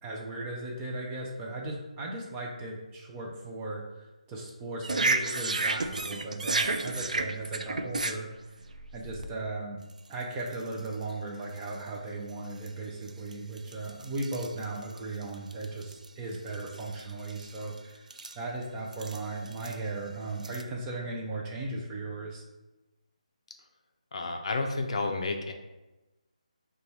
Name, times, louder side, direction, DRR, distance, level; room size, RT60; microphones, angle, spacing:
voice 1, 0.0-8.3 8.9-9.8 10.1-18.1 18.4-22.4, right 2 dB, 15° right, -2 dB, 0.4 m, -37 dB
sound 1, 4.8-9.3 10.0-10.1 10.5-10.9 11.6-11.7 12.7-12.8 13.1-16.1 16.3-17.8 18.1-18.4 18.9-19.8 20.4-20.6, right 3 dB, 85° right, 0.3 m, -32 dB
voice 2, 24.1-25.5, left 3 dB, 50° left, 4 dB, 0.4 m, -31 dB
3.1 x 2.3 x 4.0 m, 1.0 s
figure-of-eight pair, 160°, 4 cm